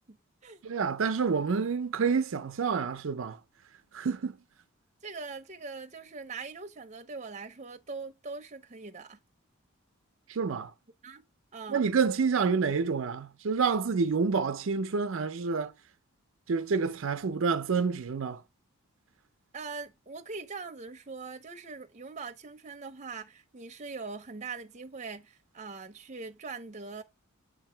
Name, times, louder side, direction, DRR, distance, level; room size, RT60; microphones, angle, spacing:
voice 1, 0.6-3.4 3.9-4.3 10.3-10.7 11.7-15.7 16.5-18.4, right 5 dB, 65° right, 0.5 m, -28 dB
voice 2, 5.0-9.2 11.0-11.2 11.5-11.8 19.5-27.0, right 4 dB, 35° right, 0.7 m, -42 dB
8.0 x 2.8 x 4.4 m
head